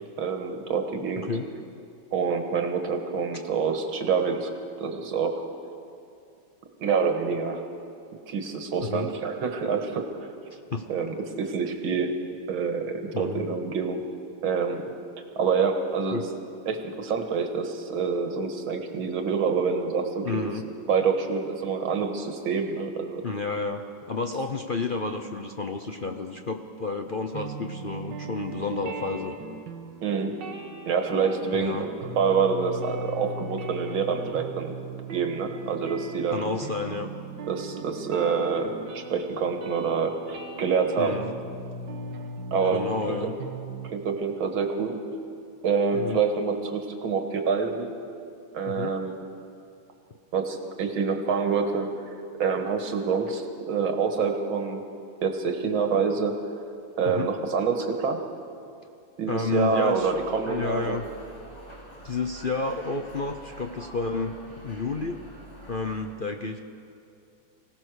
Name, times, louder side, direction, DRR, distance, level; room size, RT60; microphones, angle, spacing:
voice 1, 0.2-1.3 2.1-4.5 4.8-5.4 6.8-7.6 8.3-10.1 10.9-12.1 12.5-14.0 14.4-14.9 15.4-16.2 16.7-20.5 20.9-23.2 30.0-30.3 30.8-34.7 35.1-36.5 37.5-41.2 42.5-43.2 43.8-45.0 45.6-47.9 48.5-49.2 50.3-51.9 52.4-54.8 55.2-56.3 57.0-58.2 59.2-61.0, right 5 dB, 90° right, 5 dB, 2.4 m, -26 dB
voice 2, 8.8-9.1 10.5-10.8 13.1-13.5 16.1-16.2 20.2-20.6 23.2-23.8 24.1-29.3 31.6-31.9 36.3-37.1 41.0-41.3 42.7-43.3 45.9-46.2 48.7-48.9 57.0-57.3 59.3-60.2 60.5-61.0 62.0-64.3 64.6-65.2 65.7-66.6, left 3 dB, 55° left, 4 dB, 0.5 m, -30 dB
sound 1, 27.3-43.9, right 2 dB, 65° right, 1.8 m, -39 dB
sound 2, 59.9-66.0, right 1 dB, 15° left, 4.1 m, -46 dB
25.0 x 17.0 x 6.5 m, 2.5 s
omnidirectional pair, 2.2 m